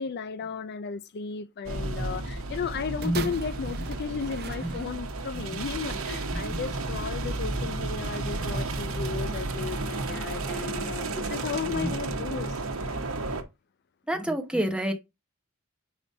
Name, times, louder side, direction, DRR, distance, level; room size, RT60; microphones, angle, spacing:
voice 1, 0.0-13.0, left 6 dB, 50° left, 0.4 m, -35 dB
sound 1, 1.7-13.4, right 2 dB, 70° right, 1.0 m, -32 dB
sound 2, 3.0-5.3 6.1-6.2, right 5 dB, 50° right, 0.6 m, -40 dB
voice 2, 14.1-14.9, right 1 dB, 5° right, 0.9 m, -27 dB
4.9 x 4.0 x 5.4 m
head